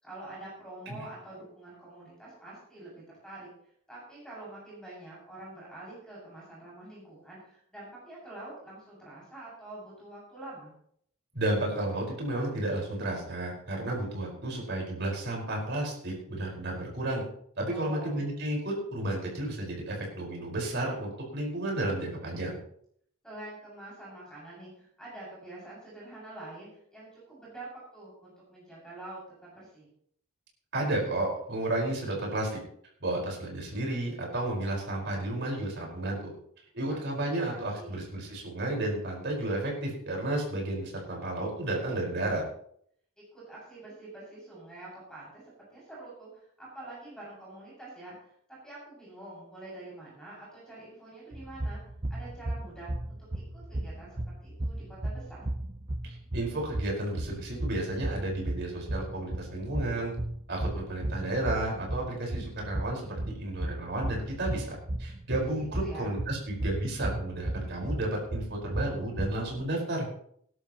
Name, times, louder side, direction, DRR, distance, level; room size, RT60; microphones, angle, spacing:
voice 1, 0.0-3.5 3.9-10.7 17.7-18.2 23.2-29.9 36.9-37.0 37.8-38.0 43.3-45.4 45.7-48.3 48.6-51.8 52.1-54.1 54.4-55.4 65.4-65.5 65.8-66.1, right 2 dB, 5° left, -6 dB, 6.8 m, -46 dB
voice 2, 11.3-17.2 17.6-22.5 30.7-32.6 33.0-36.3 36.7-42.4 56.0-60.1 60.5-70.1, right 1 dB, 50° right, -1 dB, 5.1 m, -32 dB
sound 1, 51.3-69.6, right 1 dB, 25° right, 0.8 m, -35 dB
19.5 x 11.5 x 3.1 m, 0.67 s
head